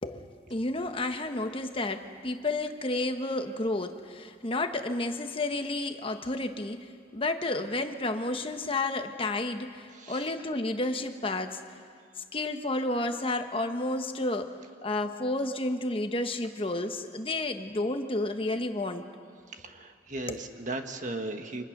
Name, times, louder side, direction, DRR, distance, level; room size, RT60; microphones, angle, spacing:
voice 1, 0.0-11.6 12.2-14.6 14.8-19.0 20.3-20.4, left 2 dB, 30° left, 7 dB, 1.1 m, -31 dB
voice 2, 9.9-10.3 19.5-21.6, right 2 dB, 45° right, 6 dB, 1.5 m, -37 dB
29.5 x 25.0 x 6.6 m, 2.2 s
head